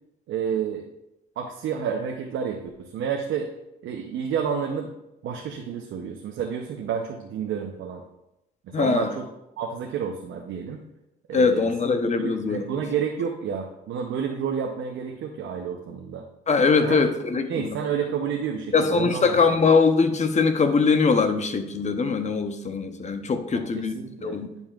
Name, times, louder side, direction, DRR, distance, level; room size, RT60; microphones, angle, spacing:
voice 1, 0.3-0.9 1.4-3.5 3.8-4.9 5.2-8.0 8.8-9.3 9.6-10.8 11.3-11.7 12.2-16.2 16.8-17.0 17.3-19.4 23.5-24.4, right 7 dB, 80° right, 2 dB, 0.7 m, -30 dB
voice 2, 8.7-9.2 11.3-12.6 16.5-17.8 18.7-24.5, left 4 dB, 35° left, 8 dB, 0.8 m, -22 dB
10.5 x 5.4 x 2.4 m, 0.89 s
cardioid pair, 90°, 20 cm